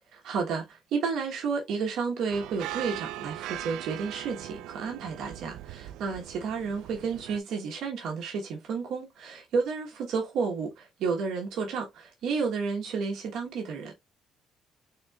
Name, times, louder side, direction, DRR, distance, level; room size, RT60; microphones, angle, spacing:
voice 1, 0.1-13.9, right 5 dB, 65° right, 1.1 m, -31 dB
sound 1, 2.3-7.4, right 14 dB, 80° right, 0.3 m, -40 dB
4.2 x 3.7 x 2.3 m
cardioid pair, 150°, 0 cm